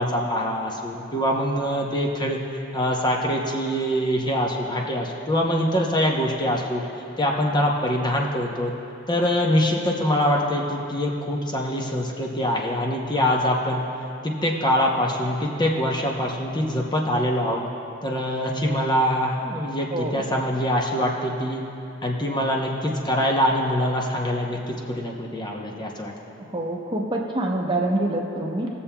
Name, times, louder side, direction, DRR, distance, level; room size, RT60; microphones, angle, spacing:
voice 1, 0.0-2.4 2.7-6.8 7.2-8.7 9.1-13.8 14.2-17.6 18.0-21.6 22.0-26.1, equal, 20° left, -1 dB, 0.7 m, -24 dB
voice 2, 19.9-20.2 26.5-28.7, right 1 dB, 25° right, 0 dB, 0.8 m, -26 dB
20.5 x 7.0 x 2.2 m, 2.7 s
head